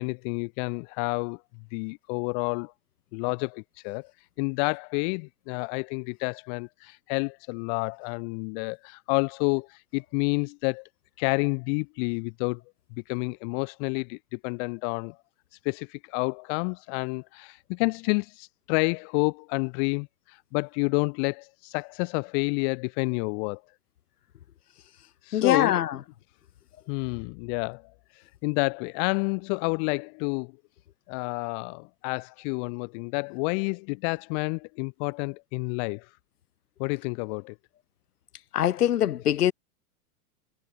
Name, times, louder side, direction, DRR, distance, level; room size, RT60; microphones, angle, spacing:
voice 1, 0.0-1.4 1.7-2.7 3.1-4.1 4.4-10.9 11.2-12.6 13.1-15.2 15.7-23.6 25.2-25.8 26.9-27.8 28.1-30.5 31.1-36.1 36.8-37.6, left 40 dB or more, 50° left, 1.9 m, -29 dB
voice 2, 25.3-26.0 38.5-39.5, left 11 dB, 85° left, 1.6 m, -23 dB
hypercardioid pair, 115°, 45 cm